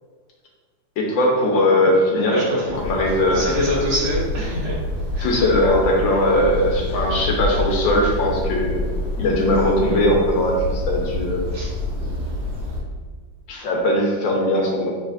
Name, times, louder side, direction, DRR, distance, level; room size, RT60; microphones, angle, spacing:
voice 1, 1.0-2.4 2.8-3.6 5.2-8.8 9.2-11.5 13.5-14.9, left 1 dB, 70° left, -1 dB, 1.5 m, -19 dB
voice 2, 2.3-2.8 3.3-4.8 5.1-5.3 9.9-10.0 11.5-11.7, equal, 80° right, -6 dB, 2.2 m, -24 dB
sound 1, 2.7-12.8, left 1 dB, 40° right, 1.1 m, -27 dB
6.2 x 3.4 x 2.4 m, 1.5 s
omnidirectional pair, 2.2 m